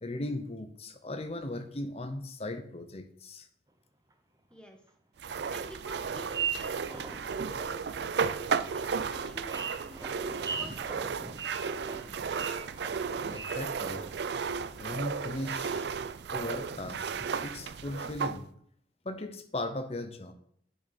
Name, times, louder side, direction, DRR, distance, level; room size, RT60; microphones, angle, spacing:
voice 1, 0.0-3.5 13.3-14.0 14.8-15.8 16.3-17.1 17.4-18.5 19.0-20.3, left 1 dB, 35° left, 0.8 m, -37 dB
sound 1, 4.1-4.2 4.5-4.6 5.5-5.6 6.0-7.4 7.9-8.0 8.7-8.8 9.1-14.3 14.5-14.8 15.3-15.9 16.2-17.3 17.7-18.1, right 6 dB, 20° right, 0.7 m, -40 dB
sound 2, 5.2-18.4, right 6 dB, 65° right, 0.4 m, -34 dB
voice 2, 5.5-8.3 8.7-12.2, equal, 5° left, 1.2 m, -50 dB
10.5 x 6.0 x 4.2 m
head